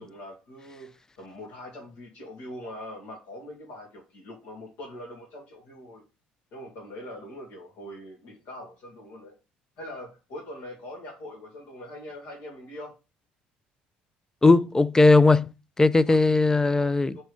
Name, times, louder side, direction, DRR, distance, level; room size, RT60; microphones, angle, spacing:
voice 1, 0.0-6.0 6.5-9.4 9.8-13.0 15.9-16.4 16.8-17.2, left 1 dB, 75° left, 2.5 m, -42 dB
voice 2, 14.4-15.5 15.8-17.2, left 3 dB, 15° left, 0.4 m, -18 dB
5.1 x 4.3 x 4.9 m
supercardioid pair, 85°, 4 cm